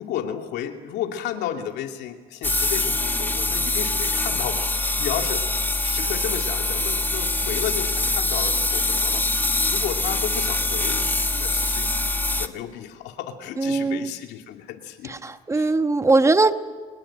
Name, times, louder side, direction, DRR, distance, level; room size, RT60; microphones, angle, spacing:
voice 1, 0.0-5.5 5.8-15.8, left 10 dB, 85° left, 4 dB, 2.7 m, -33 dB
sound 1, 2.4-12.5, left 2 dB, 10° left, 1.4 m, -24 dB
voice 2, 13.6-14.1 15.5-16.5, right 3 dB, 15° right, 9 dB, 1.3 m, -19 dB
26.5 x 21.5 x 8.9 m, 1.5 s
cardioid pair, 110°, 17 cm